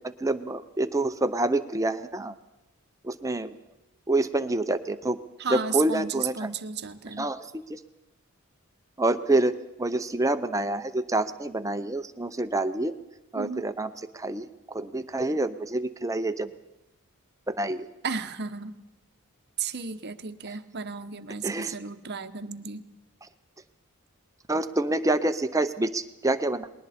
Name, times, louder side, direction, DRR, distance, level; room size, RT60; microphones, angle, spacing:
voice 1, 0.0-2.3 3.0-3.5 4.1-5.2 5.5-6.5 7.1-7.8 9.0-12.9 13.3-16.5 17.5-17.9 21.4-21.7 24.5-26.7, right 2 dB, 15° right, 10 dB, 0.6 m, -27 dB
voice 2, 5.4-7.3 13.3-13.7 18.0-18.8 19.6-22.8, right 6 dB, 50° right, 9 dB, 0.9 m, -33 dB
29.5 x 21.0 x 4.3 m, 0.95 s
head